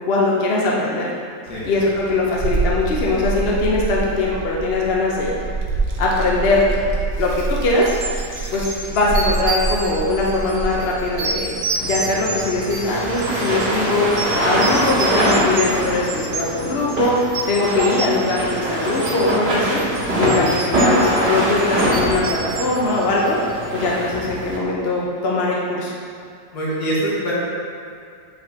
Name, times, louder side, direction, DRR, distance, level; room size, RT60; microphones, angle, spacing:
voice 1, 0.1-1.1 1.6-5.5 6.0-6.7 7.2-7.9 8.5-11.6 11.8-19.8 20.2-23.4 23.7-26.0, left 2 dB, 50° left, -3 dB, 0.8 m, -21 dB
voice 2, 1.5-1.9 26.5-27.3, right 1 dB, 65° left, -7 dB, 2.2 m, -24 dB
Child speech kid speaking, 1.5-15.9, right 3 dB, 90° right, 1.5 m, -28 dB
sound 1, 7.8-23.6, right 3 dB, 75° right, 1.4 m, -30 dB
sound 2, 11.8-24.6, right 1 dB, 35° right, 2.1 m, -23 dB
9.5 x 4.8 x 2.8 m, 2.3 s
omnidirectional pair, 1.9 m